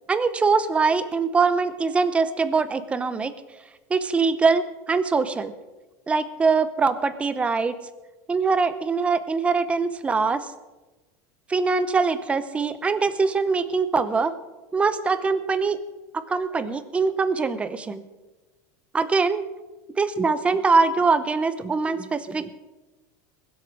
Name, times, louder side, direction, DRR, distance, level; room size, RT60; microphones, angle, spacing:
voice 1, 0.1-3.3 3.9-5.5 6.1-7.7 8.3-10.5 11.5-14.3 14.7-15.8 16.1-18.0 18.9-19.4 20.0-22.5, right 4 dB, 10° right, 12 dB, 0.7 m, -23 dB
21.0 x 8.0 x 6.2 m, 1.1 s
supercardioid pair, 160°, 10 cm